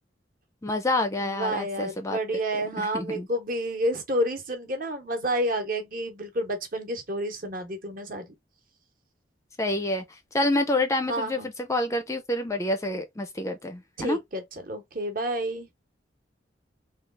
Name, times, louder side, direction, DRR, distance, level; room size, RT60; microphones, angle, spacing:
voice 1, 0.6-2.2 2.9-3.3 9.6-10.0 10.3-14.2, left 2 dB, 15° left, 0.4 m, -27 dB
voice 2, 1.2-8.3 11.1-11.5 14.0-15.7, right 1 dB, 50° right, 0.9 m, -30 dB
3.2 x 2.3 x 3.2 m
head